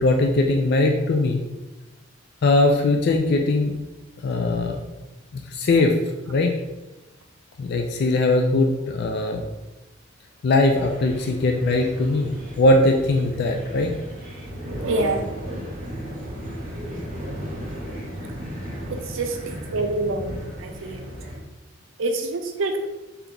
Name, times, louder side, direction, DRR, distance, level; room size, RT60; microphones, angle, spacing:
voice 1, 0.0-1.4 2.4-3.7 4.2-4.8 5.3-5.9 6.3-6.5 7.6-9.5 10.4-13.9, left 2 dB, 55° left, 2 dB, 0.4 m, -20 dB
sound 1, 10.6-21.4, equal, 45° right, 1.0 m, -35 dB
voice 2, 14.8-15.3 18.9-21.1 22.0-22.8, right 2 dB, 70° right, 5 dB, 0.5 m, -26 dB
3.4 x 2.9 x 3.8 m, 1.1 s
head